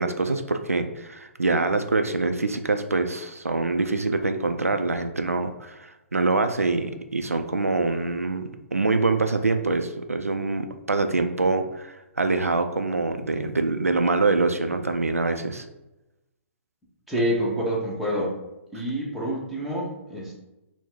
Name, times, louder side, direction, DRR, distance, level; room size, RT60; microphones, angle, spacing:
voice 1, 0.0-15.7, right 3 dB, 90° right, 7 dB, 0.4 m, -25 dB
voice 2, 17.1-18.3 18.7-20.3, equal, ahead, -6 dB, 0.9 m, -27 dB
4.1 x 2.1 x 3.9 m, 0.97 s
figure-of-eight pair, 125°, 8 cm